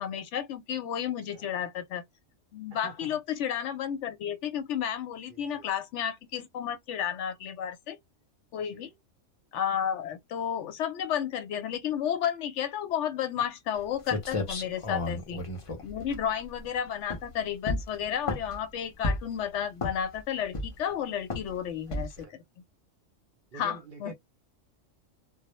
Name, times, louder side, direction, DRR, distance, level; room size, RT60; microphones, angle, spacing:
voice 1, 0.0-2.0 2.5-8.0 8.5-8.9 9.5-15.4 15.8-22.4 23.5-24.1, left 9 dB, 70° left, 0.8 m, -32 dB
voice 2, 1.0-1.5 2.7-3.2 5.3-5.7 8.6-8.9 14.6-15.1 22.0-22.4 23.5-24.1, right 4 dB, 55° right, 0.6 m, -49 dB
sound 1, 13.8-13.9 14.1-16.7 17.1-17.3 17.7-18.6 19.0-19.4 19.8-20.2 20.5-20.9 21.3-21.5 21.9-22.2, left 2 dB, 45° left, 0.4 m, -32 dB
2.2 x 2.0 x 2.8 m
omnidirectional pair, 1.3 m